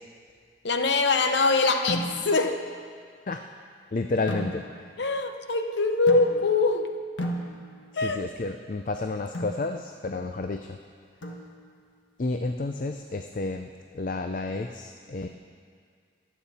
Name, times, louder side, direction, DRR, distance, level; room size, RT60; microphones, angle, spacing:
voice 1, 0.6-2.6 5.0-6.9 7.9-8.2, left 3 dB, 65° left, 6 dB, 0.8 m, -23 dB
sound 1, 1.9-2.5 4.3-5.0 6.1-6.7 7.2-8.0 9.3-9.7 11.2-11.8, equal, 85° left, 1.5 m, -35 dB
voice 2, 3.9-4.9 8.0-10.8 12.2-15.3, left 3 dB, 45° left, 6 dB, 0.4 m, -31 dB
23.0 x 8.6 x 4.2 m, 2.1 s
head